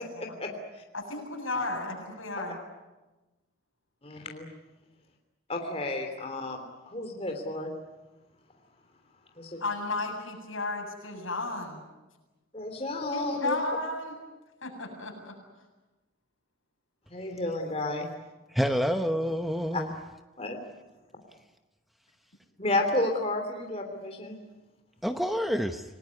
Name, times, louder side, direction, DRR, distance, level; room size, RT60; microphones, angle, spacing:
voice 1, 0.9-2.6 9.6-11.8 13.1-14.2 14.6-15.3, left 2 dB, 70° left, 7.7 m, -33 dB
voice 2, 4.0-4.5 5.5-6.6 6.9-7.7 9.4-9.6 12.5-13.6 17.1-18.1 19.7-19.8 20.4-20.6 22.6-24.4, left 2 dB, 30° left, 3.2 m, -31 dB
voice 3, 18.5-19.9 25.0-25.8, equal, ahead, 0.9 m, -28 dB
28.5 x 19.0 x 9.6 m
head